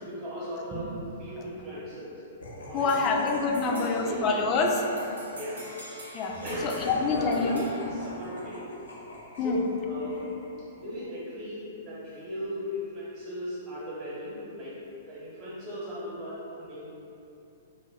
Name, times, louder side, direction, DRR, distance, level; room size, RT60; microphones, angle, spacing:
voice 1, 0.0-2.2 2.7-3.2 3.6-4.2 5.3-5.7 6.4-7.6 7.9-8.6 9.4-10.2 10.7-14.8 15.1-16.9, left 1 dB, 35° right, -8 dB, 0.9 m, -37 dB
Laughter, 2.4-10.8, equal, 75° left, 0.6 m, -43 dB
voice 2, 2.7-4.8 6.1-7.6 9.4-9.6, left 4 dB, 30° left, 2 dB, 0.3 m, -26 dB
sound 1, 2.9-8.9, equal, 85° right, 0.7 m, -47 dB
2.4 x 2.3 x 3.2 m, 2.8 s
figure-of-eight pair, 115°, 0 cm